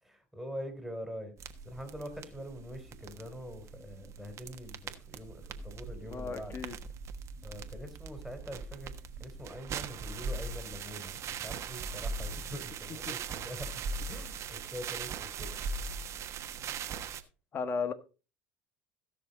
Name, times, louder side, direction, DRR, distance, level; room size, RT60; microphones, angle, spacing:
voice 1, 0.0-6.5 7.4-8.9 9.2-13.8 14.1-15.9, equal, ahead, 3.4 m, -44 dB
sound 1, 1.4-17.2, right 5 dB, 50° right, 1.3 m, -40 dB
voice 2, 6.1-6.8 17.5-17.9, left 5 dB, 35° left, 1.4 m, -34 dB
16.5 x 6.2 x 4.0 m
hypercardioid pair, 85°, 6 cm